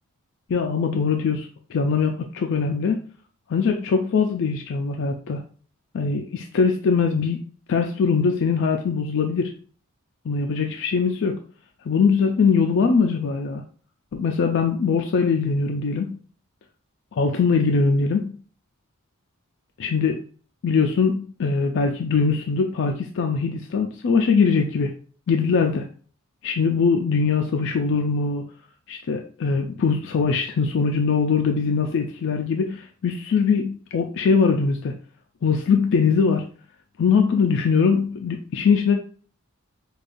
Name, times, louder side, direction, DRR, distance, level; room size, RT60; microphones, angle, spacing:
voice 1, 0.5-3.0 3.5-5.4 5.9-7.4 7.7-9.5 10.3-11.4 11.9-13.6 14.1-16.2 17.2-18.4 19.8-20.2 20.6-24.9 25.3-25.9 26.4-28.5 28.9-35.0 35.4-36.5 37.0-38.9, left 5 dB, 60° left, 3 dB, 0.4 m, -22 dB
5.0 x 2.3 x 2.5 m, 0.42 s
head